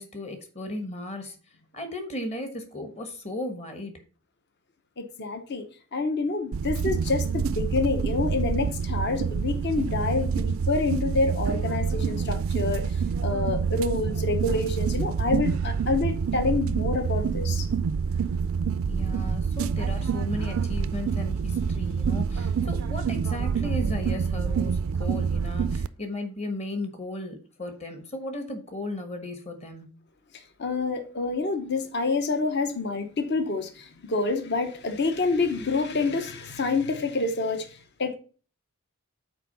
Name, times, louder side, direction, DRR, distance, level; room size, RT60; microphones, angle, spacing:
voice 1, 0.0-1.4 1.7-4.0 18.9-30.0, left 1 dB, 30° left, 1.2 m, -35 dB
voice 2, 5.0-5.7 5.9-17.7 30.6-38.2, left 3 dB, 50° left, 0.8 m, -27 dB
sound 1, 6.5-25.9, right 6 dB, 65° right, 0.4 m, -27 dB
6.0 x 4.5 x 5.4 m
head